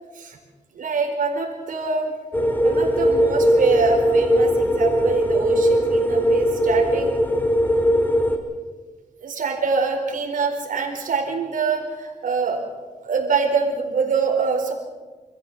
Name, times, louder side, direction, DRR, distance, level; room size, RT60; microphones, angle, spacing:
voice 1, 0.7-2.1 2.6-7.1 9.2-12.6 13.0-14.7, right 4 dB, 75° right, 2 dB, 4.3 m, -24 dB
sound 1, 2.3-8.4, equal, 15° left, 2.4 m, -19 dB
26.5 x 14.5 x 7.2 m, 1.4 s
wide cardioid pair, 105°, 14 cm